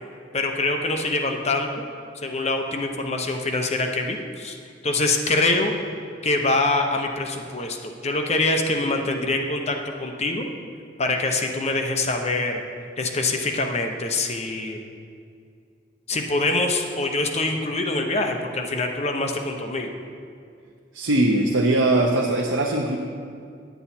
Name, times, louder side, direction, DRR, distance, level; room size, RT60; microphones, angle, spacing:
voice 1, 0.3-1.8 2.2-4.6 4.8-5.7 6.2-10.5 11.0-12.6 13.0-14.8 16.1-20.0, left 2 dB, 35° left, 3 dB, 0.7 m, -24 dB
voice 2, 20.9-23.0, right 2 dB, 85° right, 0 dB, 0.7 m, -20 dB
9.2 x 9.2 x 4.3 m, 2.3 s
head